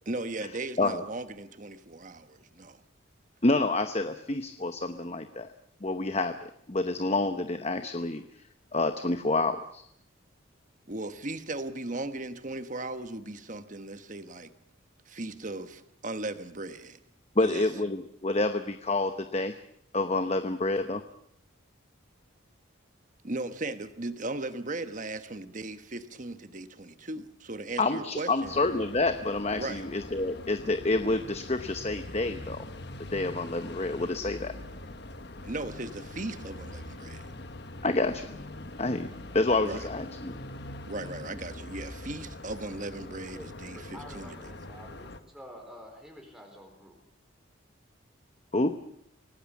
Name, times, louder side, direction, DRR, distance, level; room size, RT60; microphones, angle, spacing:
voice 1, 0.0-2.8 10.9-14.5 15.1-17.0 17.4-17.7 23.2-28.5 29.6-29.8 35.4-37.3 39.6-39.9 40.9-44.4, right 2 dB, 40° right, 10 dB, 1.3 m, -37 dB
voice 2, 3.4-5.5 5.8-8.2 8.7-9.8 17.4-19.6 19.9-21.0 27.8-32.6 33.1-34.5 37.8-38.3 38.8-39.1 39.3-40.4 48.5-48.7, left 2 dB, 30° left, 9 dB, 0.9 m, -28 dB
sound 1, 28.4-45.2, left 1 dB, 55° left, 1.4 m, -43 dB
voice 3, 43.3-47.0, equal, ahead, 1 dB, 4.2 m, -48 dB
26.0 x 18.0 x 7.3 m, 0.72 s
head